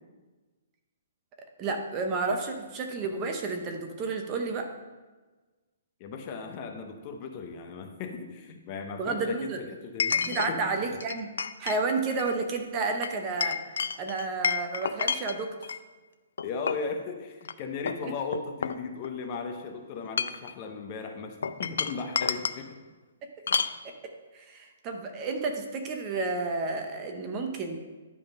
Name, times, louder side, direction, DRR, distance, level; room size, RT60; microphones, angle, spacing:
voice 1, 1.6-4.7 9.0-9.6 10.3-11.3 11.6-13.6 14.0-15.5 18.0-18.1 23.2-23.3 24.3-27.8, right 3 dB, 20° right, 4 dB, 0.6 m, -31 dB
voice 2, 6.0-10.9 16.4-22.8, left 4 dB, 25° left, 5 dB, 0.6 m, -37 dB
Chink clink, 6.5-6.6 10.0-10.5 11.0-11.8 12.1-12.4 13.0-15.8 16.4-16.9 17.4-17.5 17.9-19.3 20.0-20.5 21.4-22.6 23.5-23.8, left 6 dB, 80° left, 0.4 m, -30 dB
10.5 x 3.6 x 5.2 m, 1.3 s
hypercardioid pair, 170°, 0 cm